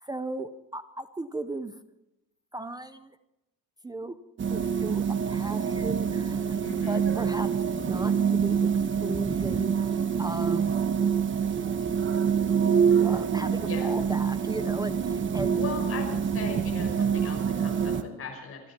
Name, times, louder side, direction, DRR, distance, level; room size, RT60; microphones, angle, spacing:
voice 1, 0.0-1.8 2.5-3.2 3.8-4.2 4.5-6.6 6.9-8.7 9.0-10.7 13.0-15.6, right 2 dB, 10° right, 11 dB, 0.6 m, -36 dB
sound 1, 4.4-18.0, right 7 dB, 30° right, 1.2 m, -26 dB
voice 2, 6.6-7.0 13.7-13.9 15.5-18.6, left 4 dB, 35° left, 1 dB, 5.7 m, -38 dB
26.5 x 12.0 x 4.4 m, 0.89 s
cardioid pair, 180°, 37 cm